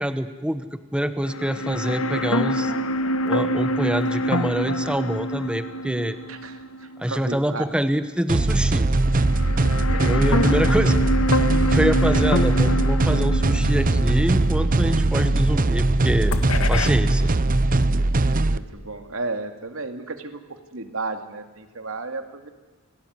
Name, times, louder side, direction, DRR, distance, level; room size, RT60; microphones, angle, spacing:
voice 1, 0.0-2.7 3.2-6.2 7.0-8.9 10.0-11.0 11.7-16.3 16.7-17.3, equal, 5° right, 10 dB, 1.1 m, -25 dB
sound 1, 1.2-7.5 7.8-7.9 9.0-15.9 16.3-16.9, equal, 85° left, 1.8 m, -26 dB
voice 2, 6.3-7.8 9.9-10.4 12.1-12.2 18.2-20.4 20.7-22.5, right 3 dB, 75° right, 7 dB, 2.5 m, -34 dB
sound 2, 8.3-18.6, right 2 dB, 40° right, 0.7 m, -20 dB
29.0 x 19.0 x 9.6 m, 1.3 s
head